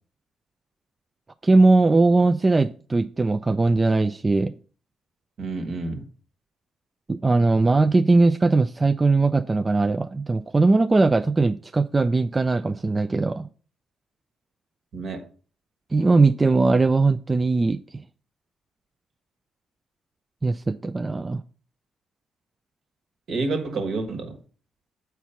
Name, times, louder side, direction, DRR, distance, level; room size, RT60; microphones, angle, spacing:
voice 1, 1.4-4.5 7.1-13.5 15.9-17.8 20.4-21.4, right 3 dB, 25° right, 0.3 m, -20 dB
voice 2, 5.4-6.0 14.9-15.3 23.3-24.4, right 3 dB, 60° right, 1.5 m, -29 dB
7.0 x 4.6 x 5.7 m
cardioid pair, 90°, 0 cm